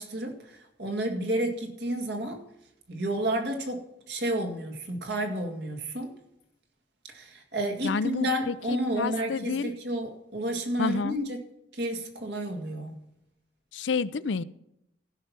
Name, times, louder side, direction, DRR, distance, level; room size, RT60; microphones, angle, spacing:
voice 1, 0.0-2.4 2.9-6.1 7.1-11.4 11.7-13.0, right 1 dB, 65° right, 4 dB, 2.1 m, -31 dB
voice 2, 7.8-9.7 10.8-11.2 13.7-14.4, left 5 dB, 75° left, 16 dB, 0.5 m, -30 dB
15.5 x 5.8 x 6.0 m, 0.82 s
head